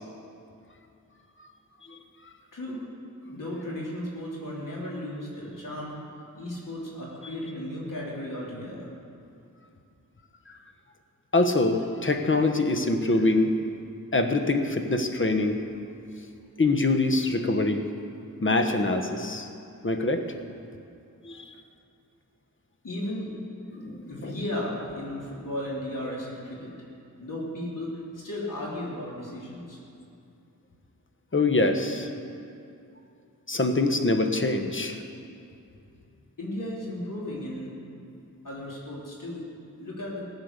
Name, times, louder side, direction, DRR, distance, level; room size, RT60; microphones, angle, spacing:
voice 1, 2.5-2.9 3.3-6.0 6.3-8.9 22.8-23.3 24.1-26.7 27.2-29.8 36.4-37.8 38.4-39.5 39.7-40.3, left 1 dB, 65° left, -5 dB, 3.7 m, -35 dB
voice 2, 11.3-13.5 14.1-15.6 16.6-17.8 18.4-19.5 19.8-20.2 21.2-21.4 23.7-24.3 31.3-32.1 33.5-35.0, left 2 dB, 35° left, 6 dB, 1.3 m, -24 dB
17.0 x 8.9 x 6.8 m, 2.6 s
wide cardioid pair, 80°, 35 cm